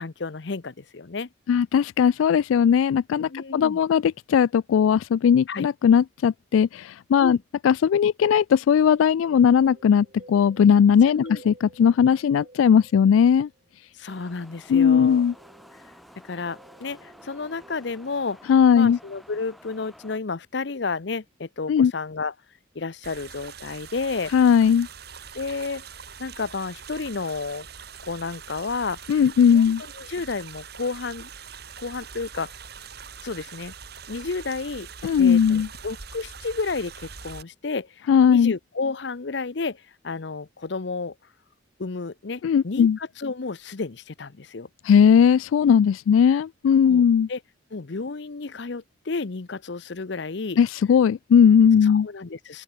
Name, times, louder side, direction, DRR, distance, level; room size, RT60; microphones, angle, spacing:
voice 1, 0.0-1.3 3.2-3.8 5.5-5.7 7.2-7.4 11.1-11.4 13.9-15.3 16.2-22.3 22.7-24.3 25.3-25.9 26.2-27.7 28.0-29.0 29.5-29.6 30.0-31.3 31.8-32.5 33.2-33.7 34.1-34.9 35.2-41.1 41.8-44.7 46.9-47.0 47.3-47.4 47.7-50.6 51.8-52.6, left 4 dB, 60° left, 0.7 m, -31 dB
voice 2, 1.5-7.4 7.6-13.5 14.7-15.3 18.5-19.0 21.7-21.9 24.3-24.9 29.1-29.8 35.0-35.7 38.1-38.5 42.4-43.0 44.8-47.3 50.6-52.1, left 7 dB, 90° left, 0.3 m, -18 dB
sound 1, 9.5-13.8 14.3-17.9, right 2 dB, 35° right, 1.7 m, -53 dB
sound 2, 14.1-20.2, equal, ahead, 2.7 m, -51 dB
sound 3, 23.0-37.4, right 6 dB, 55° right, 2.7 m, -43 dB
open air
head